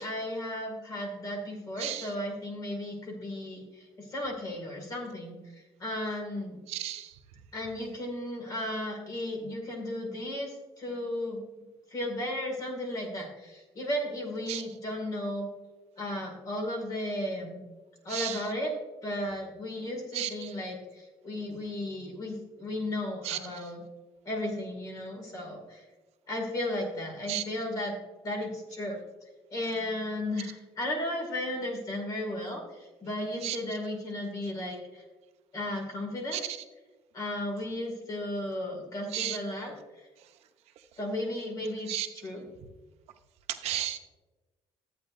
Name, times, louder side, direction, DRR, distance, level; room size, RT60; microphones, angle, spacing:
voice 1, 0.0-6.6 7.5-11.4 11.9-15.5 16.0-17.6 18.0-18.7 19.0-23.8 24.3-25.9 26.3-28.0 28.2-29.0 29.5-35.0 35.5-36.4 37.1-40.1 41.0-42.5, left 1 dB, 35° left, 1 dB, 2.3 m, -35 dB
voice 2, 1.8-2.1 6.7-7.1 14.5-14.6 18.1-18.4 20.1-20.3 23.2-23.4 27.3-27.4 33.4-33.6 36.3-36.6 39.1-39.4 41.9-42.1 43.5-44.0, right 12 dB, 90° right, 7 dB, 0.7 m, -33 dB
13.0 x 8.7 x 2.6 m, 1.2 s
cardioid pair, 180°, 10 cm